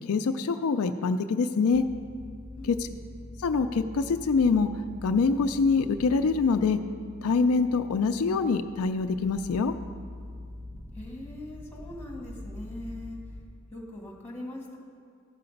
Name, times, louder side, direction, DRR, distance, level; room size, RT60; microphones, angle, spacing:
voice 1, 0.1-1.8 2.6-2.9 3.4-4.7 5.0-6.8 7.2-9.7, left 4 dB, 90° left, 8 dB, 0.4 m, -25 dB
sound 1, 1.7-13.4, left 2 dB, 40° right, 1.0 m, -44 dB
voice 2, 2.6-3.0 10.9-13.2 13.7-14.8, left 1 dB, 10° left, -2 dB, 1.6 m, -41 dB
13.5 x 5.7 x 5.2 m, 2.4 s
head